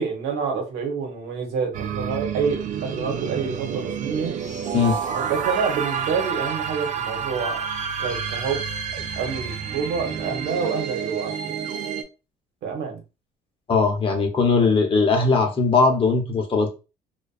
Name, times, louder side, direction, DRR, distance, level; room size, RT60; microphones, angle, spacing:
voice 1, 0.0-4.3 5.1-7.6 8.0-8.6 9.2-11.5 12.6-13.0, right 5 dB, 80° right, 3 dB, 1.0 m, -27 dB
sound 1, 1.7-12.0, right 7 dB, 50° right, 0.4 m, -29 dB
voice 2, 13.7-16.7, left 4 dB, 30° left, 3 dB, 0.7 m, -19 dB
2.4 x 2.2 x 2.3 m, 0.29 s
cardioid pair, 110°, 17 cm